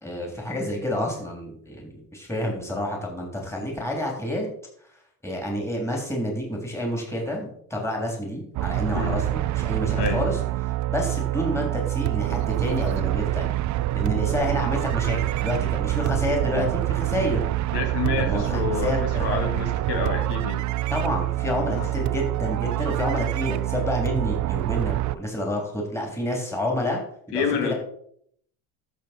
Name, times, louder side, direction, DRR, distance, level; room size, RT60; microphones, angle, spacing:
voice 1, 0.0-4.5 5.2-10.4 10.9-13.5 13.9-17.4 18.2-19.2 20.9-27.0 27.3-27.7, left 1 dB, 5° left, 0 dB, 3.5 m, -29 dB
sound 1, 8.5-25.1, right 16 dB, 45° right, 0.5 m, -26 dB
voice 2, 17.7-20.6 21.8-21.9 27.3-27.7, left 6 dB, 70° left, 4 dB, 2.7 m, -28 dB
13.5 x 6.6 x 4.5 m, 0.66 s
cardioid pair, 125°, 43 cm